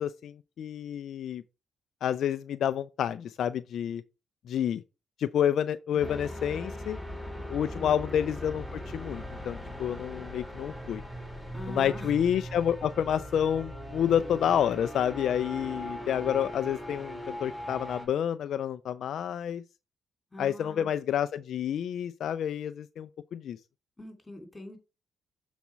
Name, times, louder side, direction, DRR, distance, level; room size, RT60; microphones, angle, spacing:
voice 1, 0.0-1.4 2.0-4.0 4.5-4.8 5.2-7.0 7.5-11.0 11.7-19.6 20.4-23.6, left 9 dB, 70° left, 0.4 m, -29 dB
sound 1, 6.0-18.1, equal, 5° right, 3.8 m, -40 dB
voice 2, 11.5-12.1 20.3-20.9 24.0-24.8, left 1 dB, 15° left, 2.9 m, -43 dB
7.2 x 4.1 x 4.6 m
cardioid pair, 90°, 0 cm